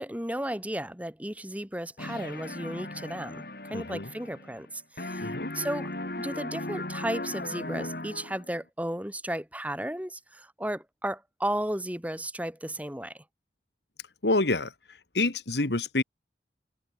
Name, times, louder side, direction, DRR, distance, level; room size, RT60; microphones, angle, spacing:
voice 1, 0.0-5.9 6.2-13.2, right 1 dB, 10° right, 4.0 m, -34 dB
sound 1, 2.0-4.7 5.0-8.6, left 1 dB, 55° left, 3.5 m, -37 dB
voice 2, 3.7-4.1 5.2-5.5 14.2-14.7 15.1-16.0, left 2 dB, 75° left, 2.2 m, -27 dB
head